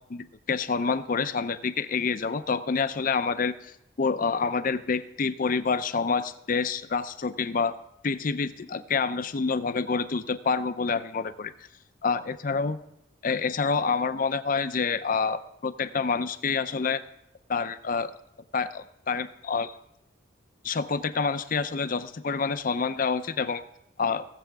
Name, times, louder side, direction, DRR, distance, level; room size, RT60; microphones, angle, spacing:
voice 1, 0.1-7.8 8.0-11.5 12.0-12.8 13.2-17.0 17.5-18.1 18.5-19.7 20.6-23.6 24.0-24.3, left 5 dB, 45° left, 12 dB, 0.5 m, -27 dB
18.0 x 7.6 x 3.5 m, 0.82 s
head